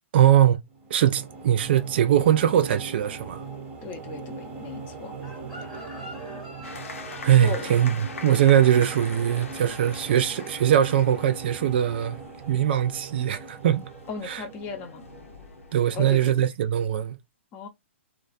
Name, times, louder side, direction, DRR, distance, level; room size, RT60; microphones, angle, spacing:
voice 1, 0.1-0.6 0.9-3.4 7.2-12.2 12.5-13.8 14.3-14.4 15.7-17.2, right 10 dB, 50° right, 0.4 m, -21 dB
sound 1, 0.7-16.0, right 4 dB, 20° right, 0.7 m, -40 dB
voice 2, 3.8-5.1 7.4-7.7 14.1-15.1 15.9-16.5 17.5-17.7, left 5 dB, 25° left, 0.6 m, -36 dB
Chicken rooster, 5.2-10.2 10.5-10.8, equal, 10° left, 1.0 m, -45 dB
sound 2, 6.6-16.4, left 4 dB, 80° left, 0.7 m, -44 dB
2.3 x 2.2 x 2.4 m
hypercardioid pair, 140°, 7 cm